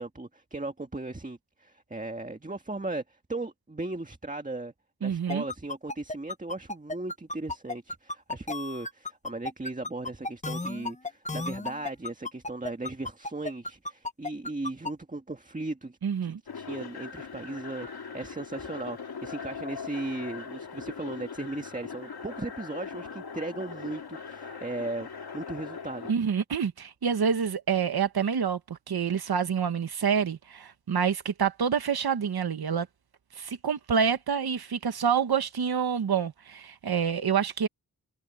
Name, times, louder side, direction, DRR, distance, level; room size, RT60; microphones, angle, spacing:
voice 1, 0.0-4.7 5.0-26.1, right 2 dB, 20° right, 1.8 m, -37 dB
voice 2, 5.0-5.4 16.0-16.4 26.1-32.9 33.3-37.7, right 7 dB, 90° right, 1.4 m, -27 dB
sound 1, 5.3-14.9, left 2 dB, 20° left, 0.9 m, -34 dB
sound 2, 16.5-26.1, left 5 dB, 90° left, 2.7 m, -40 dB
wide cardioid pair, 85°, 36 cm